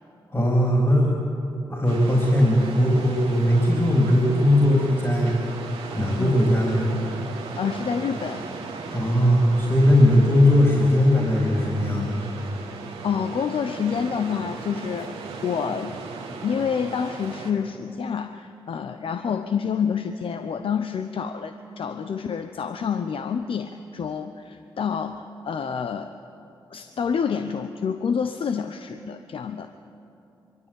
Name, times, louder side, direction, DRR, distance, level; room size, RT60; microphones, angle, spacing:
voice 1, 0.3-1.1 1.7-5.4 6.0-6.9 8.9-12.3, left 1 dB, 30° left, -2 dB, 3.7 m, -19 dB
sound 1, 1.9-17.5, right 4 dB, 90° right, 1.7 m, -37 dB
voice 2, 7.6-8.4 13.0-15.2 15.4-15.9 16.4-26.1 26.7-29.7, left 6 dB, 65° left, 8 dB, 0.8 m, -28 dB
22.5 x 13.5 x 9.0 m, 2.9 s
supercardioid pair, 45°, 10 cm